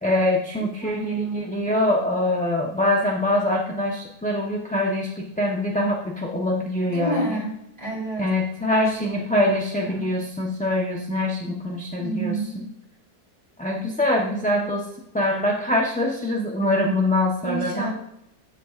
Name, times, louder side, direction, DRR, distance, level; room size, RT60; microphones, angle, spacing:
voice 1, 0.0-7.4 8.2-12.7 13.6-14.9 15.1-17.9, left 1 dB, 5° left, -1 dB, 0.7 m, -24 dB
voice 2, 0.8-1.4 6.8-8.2 8.8-9.1 9.4-9.5 9.8-10.1 12.0-12.6 17.4-17.9, right 4 dB, 25° right, -2 dB, 3.0 m, -29 dB
14.0 x 7.6 x 2.5 m, 0.80 s
omnidirectional pair, 1.7 m